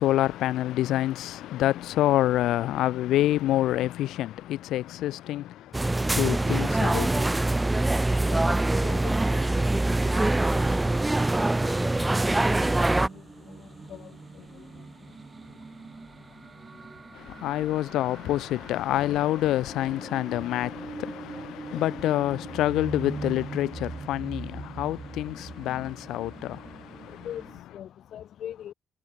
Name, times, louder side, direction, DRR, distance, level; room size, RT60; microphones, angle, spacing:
voice 1, 0.0-7.4 17.1-27.3, left 14 dB, 85° left, 3.3 m, -27 dB
sound 1, 5.7-13.1, right 2 dB, 15° right, 1.2 m, -24 dB
voice 2, 8.8-9.7 10.6-10.7 13.9-14.0 27.2-27.4 27.7-28.7, left 10 dB, 70° left, 1.7 m, -39 dB
sound 2, 11.2-27.6, right 4 dB, 30° right, 2.6 m, -42 dB
cardioid pair, 90°, 0 cm